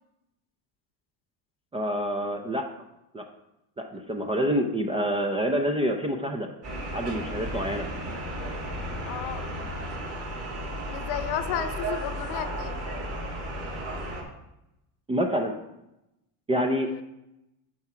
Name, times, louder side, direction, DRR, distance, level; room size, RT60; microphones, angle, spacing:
voice 1, 1.7-2.6 3.1-3.3 3.8-6.5 6.9-7.9 15.1-15.5 16.5-16.9, equal, 15° right, 4 dB, 0.4 m, -27 dB
sound 1, 6.6-14.2, right 1 dB, 30° right, 2.8 m, -34 dB
voice 2, 9.0-9.5 10.9-12.8 16.9-17.0, left 10 dB, 50° left, 10 dB, 0.8 m, -33 dB
9.6 x 4.4 x 5.7 m, 0.89 s
cardioid pair, 145°, 48 cm